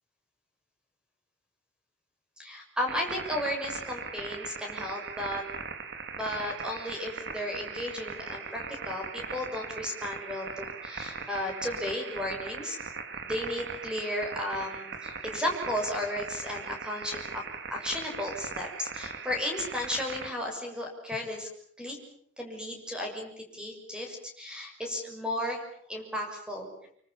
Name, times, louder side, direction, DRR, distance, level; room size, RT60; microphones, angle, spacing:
voice 1, 2.4-5.4 6.1-12.8 13.1-21.5 21.8-22.0 22.4-25.6 25.9-26.7, left 1 dB, 5° right, 2 dB, 6.5 m, -34 dB
sound 1, 2.9-20.3, right 5 dB, 55° right, 3.2 m, -39 dB
27.0 x 25.0 x 7.3 m, 0.63 s
head